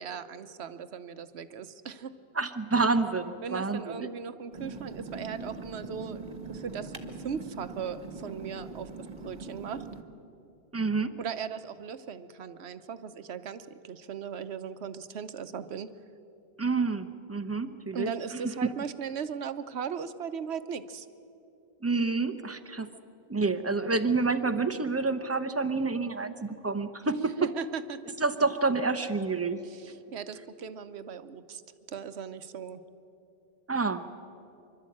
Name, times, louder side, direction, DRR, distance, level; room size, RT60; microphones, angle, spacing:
voice 1, 0.0-2.1 3.4-7.0 7.2-9.9 11.2-15.9 17.9-21.1 27.2-28.0 29.6-31.6 31.9-32.8, right 7 dB, 70° right, 11 dB, 1.1 m, -38 dB
voice 2, 2.4-4.1 10.7-11.2 16.6-18.1 18.6-18.7 21.8-22.9 23.3-27.5 28.2-29.6 33.7-34.0, right 3 dB, 15° right, 9 dB, 0.7 m, -28 dB
sound 1, 4.5-10.0, right 3 dB, 40° right, 1.4 m, -42 dB
26.0 x 12.5 x 8.6 m, 2.7 s
omnidirectional pair, 1.2 m